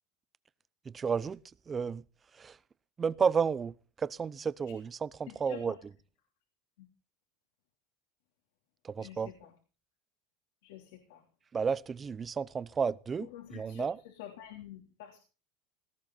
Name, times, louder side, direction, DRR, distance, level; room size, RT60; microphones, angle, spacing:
voice 1, 0.8-1.4 1.7-2.0 2.3-2.6 3.0-5.7 8.8-9.3 11.5-14.0, right 6 dB, 20° right, 0.6 m, -32 dB
voice 2, 5.3-5.8 6.8-6.9 9.0-9.5 10.6-11.2 13.2-15.2, left 12 dB, 85° left, 3.4 m, -48 dB
18.0 x 14.5 x 4.1 m
supercardioid pair, 140°, 0 cm